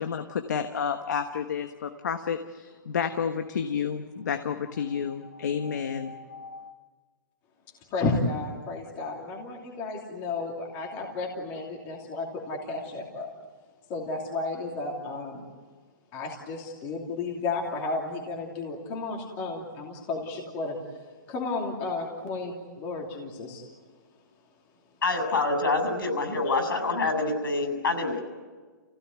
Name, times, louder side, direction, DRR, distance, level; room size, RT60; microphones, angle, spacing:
voice 1, 0.0-6.7, left 7 dB, 55° left, 7 dB, 1.4 m, -31 dB
voice 2, 7.9-13.3 13.9-15.4 16.1-20.8 21.3-23.6 26.5-26.6, left 3 dB, 20° left, -1 dB, 2.8 m, -32 dB
voice 3, 25.0-28.2, left 3 dB, 80° left, 8 dB, 7.2 m, -26 dB
29.0 x 16.5 x 9.5 m, 1.4 s
hypercardioid pair, 180°, 11 cm